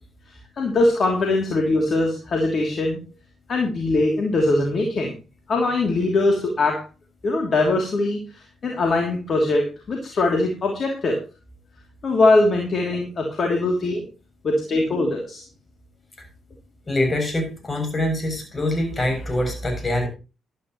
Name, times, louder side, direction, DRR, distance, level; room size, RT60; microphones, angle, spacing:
voice 1, 0.6-3.0 3.5-5.1 5.5-6.8 7.2-11.2 12.0-14.0 14.4-15.4, left 2 dB, 50° left, 1 dB, 2.9 m, -21 dB
voice 2, 16.9-20.1, left 1 dB, 35° left, 5 dB, 7.1 m, -24 dB
14.5 x 12.5 x 3.1 m, 0.32 s
hypercardioid pair, 40°, 0 cm